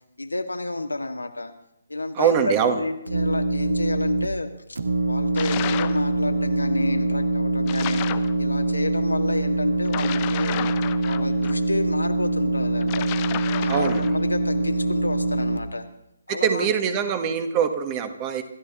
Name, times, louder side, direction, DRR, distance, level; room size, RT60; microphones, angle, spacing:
voice 1, 0.2-1.5 1.9-4.8 5.1-8.0 8.4-10.6 11.0-13.1 13.5-15.9 16.3-17.0, left 2 dB, 75° left, 6 dB, 1.8 m, -30 dB
voice 2, 2.1-2.8 13.7-14.1 16.3-18.4, right 7 dB, 20° right, 9 dB, 1.5 m, -23 dB
sound 1, 3.1-4.3 4.8-15.6, right 2 dB, 65° right, 1.3 m, -24 dB
sound 2, 5.3-6.0 7.7-8.3 9.8-11.5 12.8-14.2, left 16 dB, 25° left, 0.7 m, -32 dB
27.0 x 13.5 x 3.6 m, 0.84 s
figure-of-eight pair, 140°, 0 cm